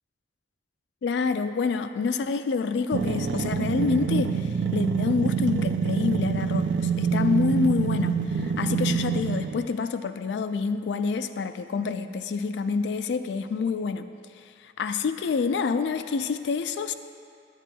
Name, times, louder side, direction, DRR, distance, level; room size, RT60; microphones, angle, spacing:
voice 1, 1.0-14.1 14.6-16.9, left 5 dB, 65° left, 10 dB, 0.3 m, -27 dB
sound 1, 2.9-9.7, right 6 dB, 70° right, 0.3 m, -26 dB
10.0 x 9.1 x 2.2 m, 2.5 s
head